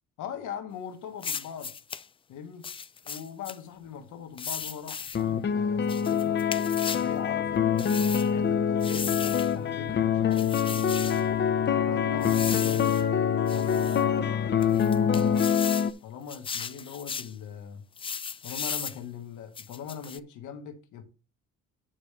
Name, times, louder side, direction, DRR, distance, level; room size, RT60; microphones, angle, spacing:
voice 1, 0.2-1.7 2.3-2.7 3.0-6.4 7.0-7.6 8.2-11.2 11.8-13.0 13.5-17.8 18.4-21.0, left 7 dB, 80° left, 1.8 m, -41 dB
sound 1, 1.2-2.1 2.6-3.6 4.4-5.2 5.9-7.1 7.8-8.3 8.8-9.5 10.3-11.2 12.2-13.0 13.5-14.0 14.6-15.9 16.3-17.3 18.0-19.0 19.6-20.2, left 6 dB, 20° left, 0.3 m, -36 dB
sound 2, 5.1-15.9, left 8 dB, 35° left, 0.8 m, -25 dB
9.7 x 3.4 x 6.7 m
cardioid pair, 115°, 30 cm